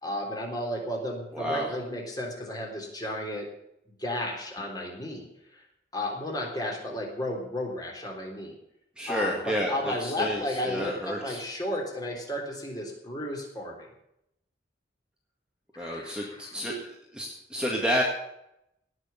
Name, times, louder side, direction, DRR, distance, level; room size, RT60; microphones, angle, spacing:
voice 1, 0.0-3.5 4.0-5.6 5.9-8.5 9.1-13.9 15.7-16.6, left 1 dB, 20° left, 0 dB, 3.6 m, -33 dB
voice 2, 1.3-1.7 9.0-11.5 15.8-18.0, equal, 5° right, -2 dB, 1.8 m, -30 dB
18.0 x 6.4 x 9.0 m, 0.79 s
head